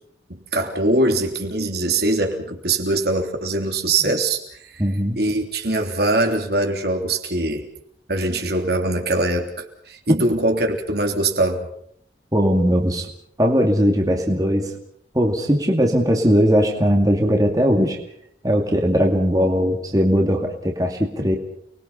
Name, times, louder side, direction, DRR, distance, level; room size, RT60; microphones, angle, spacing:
voice 1, 0.3-4.4 5.1-7.6 8.1-11.6, right 2 dB, 60° right, 3 dB, 3.4 m, -22 dB
voice 2, 4.8-5.2 12.3-13.1 13.4-14.7 15.1-18.0 18.4-21.4, equal, 20° right, 1 dB, 2.4 m, -19 dB
30.0 x 21.5 x 5.7 m, 0.68 s
head